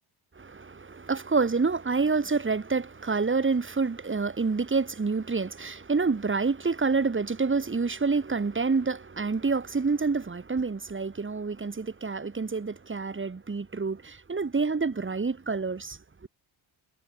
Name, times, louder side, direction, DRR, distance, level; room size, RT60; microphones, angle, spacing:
voice 1, 0.4-16.3, right 4 dB, 25° right, 5.3 m, -28 dB
cardioid pair, 130°, 48 cm